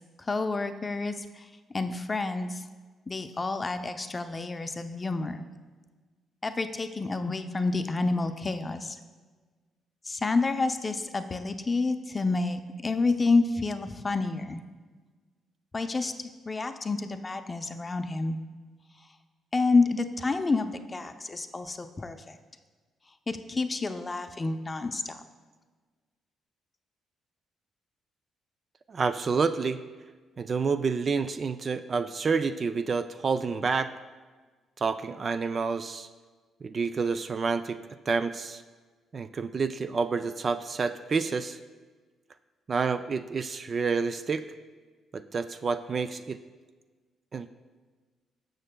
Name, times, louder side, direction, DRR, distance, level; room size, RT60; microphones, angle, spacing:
voice 1, 0.3-1.4 1.7-2.6 3.1-5.4 6.4-9.0 10.1-14.6 15.7-16.1 16.5-18.4 19.5-22.4 23.3-25.2, left 3 dB, 25° left, 8 dB, 0.5 m, -29 dB
voice 2, 28.9-29.8 30.4-33.9 34.8-36.1 36.6-37.8 38.1-38.6 39.1-41.6 42.7-44.4 45.1-46.4 47.3-47.5, right 5 dB, 40° right, 11 dB, 0.3 m, -28 dB
14.0 x 6.4 x 2.2 m, 1.4 s
cardioid pair, 90°, 0 cm